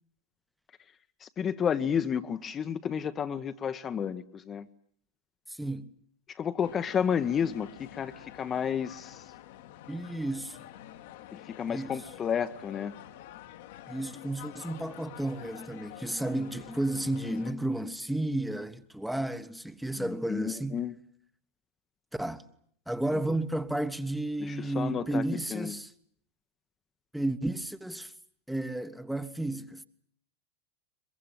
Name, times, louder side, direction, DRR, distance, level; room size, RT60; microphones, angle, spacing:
voice 1, 1.2-4.7 6.3-9.2 11.3-13.0 20.0-21.0 23.1-23.2 24.4-25.2 25.5-25.8, left 7 dB, 25° left, 1.1 m, -31 dB
voice 2, 5.5-5.9 9.9-10.7 11.7-12.0 13.9-20.8 22.1-22.4 22.9-25.9 27.1-28.1 28.5-29.9, right 1 dB, 5° right, 1.3 m, -32 dB
sound 1, 6.6-17.5, left 13 dB, 55° left, 1.5 m, -48 dB
23.0 x 22.5 x 9.1 m
figure-of-eight pair, 85°, 0 cm